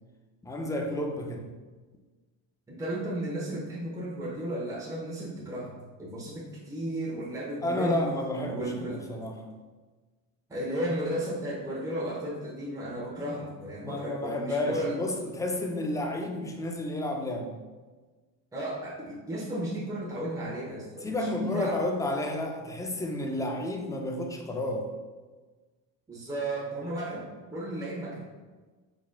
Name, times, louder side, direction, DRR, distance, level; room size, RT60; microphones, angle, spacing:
voice 1, 0.4-1.5 7.6-9.5 13.8-17.6 21.0-24.9, left 1 dB, 10° left, 2 dB, 0.4 m, -31 dB
voice 2, 2.7-8.1 8.5-9.1 10.5-15.0 18.5-21.8 26.1-28.2, right 1 dB, 10° right, -6 dB, 1.0 m, -34 dB
4.9 x 3.0 x 2.2 m, 1.3 s
supercardioid pair, 100°, 40 cm